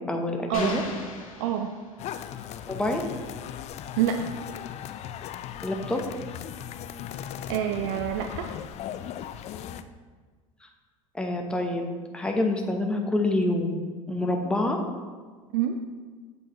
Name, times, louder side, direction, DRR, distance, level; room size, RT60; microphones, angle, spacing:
voice 1, 0.1-0.8 2.7-3.0 5.6-6.0 11.1-13.8 14.1-14.8, left 2 dB, 5° left, 2 dB, 0.9 m, -27 dB
sound 1, 0.5-2.3, left 4 dB, 90° left, 0.9 m, -39 dB
voice 2, 1.4-1.7 4.0-4.2 7.5-8.5 15.5-15.8, right 10 dB, 65° right, 5 dB, 0.5 m, -26 dB
sound 2, 2.0-9.8, left 10 dB, 40° left, 0.4 m, -38 dB
7.8 x 4.6 x 3.0 m, 1.5 s
hypercardioid pair, 80°, 17 cm